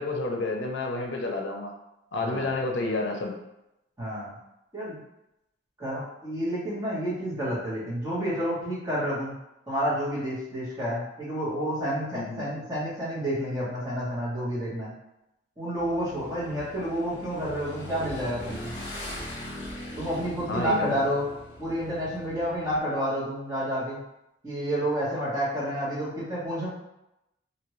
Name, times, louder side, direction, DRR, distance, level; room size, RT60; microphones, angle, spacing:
voice 1, 0.0-1.7 2.1-3.3 12.1-12.4 20.5-21.0, left 2 dB, 75° left, 1 dB, 0.5 m, -30 dB
voice 2, 2.2-2.5 4.0-4.3 4.7-5.0 5.8-9.3 9.7-14.9 15.6-18.7 20.0-21.3 21.6-24.0 24.4-26.7, equal, 20° right, -9 dB, 1.2 m, -29 dB
Motorcycle / Engine, 15.8-22.8, left 1 dB, 35° left, 0.9 m, -40 dB
2.9 x 2.6 x 3.1 m, 0.89 s
head